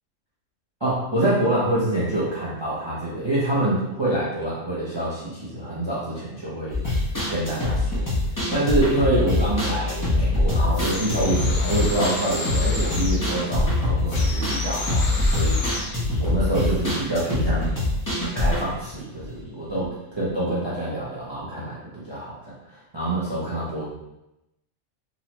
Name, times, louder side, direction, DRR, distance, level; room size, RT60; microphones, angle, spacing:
voice 1, 0.8-6.8 7.3-8.1 8.5-15.6 16.2-17.8 18.3-22.4 22.6-23.9, right 1 dB, 35° right, -8 dB, 0.4 m, -26 dB
sound 1, 6.7-19.9 20.2-20.3 20.6-20.7, left 2 dB, 20° left, 0.5 m, -24 dB
sound 2, 10.7-13.3 14.1-16.0, left 2 dB, 70° left, 0.9 m, -32 dB
3.8 x 2.0 x 2.9 m, 0.91 s
omnidirectional pair, 1.3 m